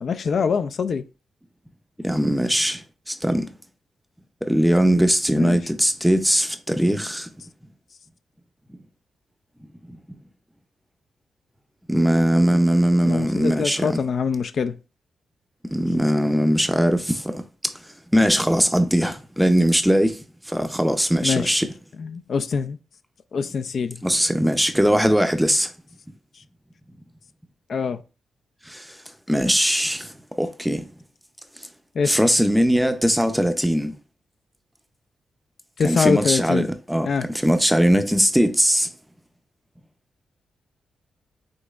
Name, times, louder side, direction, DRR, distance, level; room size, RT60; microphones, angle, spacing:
voice 1, 0.0-1.0 5.4-5.6 13.1-14.8 21.2-21.6 22.0-22.8 23.3-24.0 27.7-28.0 32.0-32.2 35.8-36.7 37.0-37.3, left 5 dB, 55° left, 0.3 m, -24 dB
voice 2, 2.0-3.5 4.4-7.3 9.9-10.0 11.9-14.0 15.7-17.7 18.1-21.7 24.0-25.7 28.7-29.0 29.3-30.8 32.1-34.0 35.8-38.9, equal, ahead, 0.5 m, -20 dB
5.1 x 3.6 x 2.4 m
cardioid pair, 105°, 0 cm